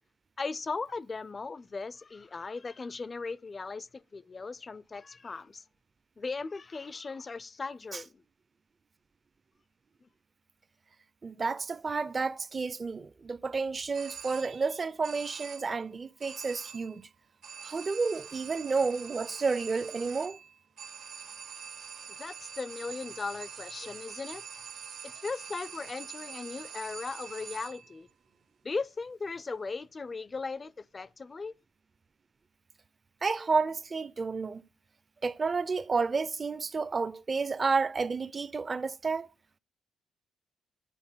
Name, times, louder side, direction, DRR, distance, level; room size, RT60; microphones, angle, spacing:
voice 1, 0.4-5.6 6.2-8.1 22.2-24.4 25.0-28.1 28.6-31.5, left 4 dB, 30° left, 0.3 m, -38 dB
voice 2, 11.2-17.1 17.6-20.4 33.2-34.6 35.2-39.3, right 4 dB, 30° right, 0.4 m, -31 dB
sound 1, 13.9-14.8 15.0-15.8 16.2-17.0 17.4-28.0, right 7 dB, 75° right, 1.4 m, -45 dB
9.9 x 4.5 x 5.4 m
cardioid pair, 90°, 0 cm